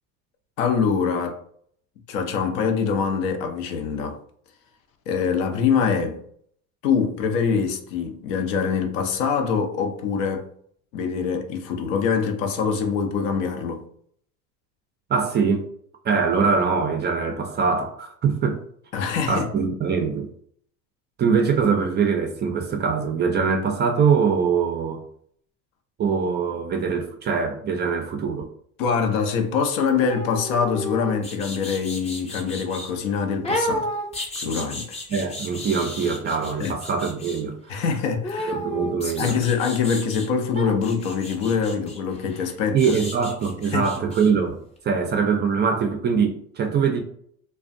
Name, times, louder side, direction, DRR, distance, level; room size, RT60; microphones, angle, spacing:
voice 1, 0.6-1.4 2.1-4.2 5.1-6.2 6.8-10.5 10.9-13.8 18.9-19.5 28.8-33.9 34.4-35.0 36.6-36.7 37.7-38.5 39.2-42.8 43.7-43.9, left 6 dB, 70° left, 0.6 m, -24 dB
voice 2, 15.1-15.7 16.0-18.6 19.3-20.3 21.2-25.0 26.0-28.5 35.1-37.8 38.5-39.4 42.7-44.6 44.8-47.0, right 5 dB, 25° right, 0.3 m, -23 dB
sound 1, 29.9-32.9 33.4-37.4 38.2-40.3 40.5-44.3 44.6-44.7, left 1 dB, 15° left, 0.6 m, -33 dB
2.4 x 2.2 x 2.5 m
hypercardioid pair, 85°, 41 cm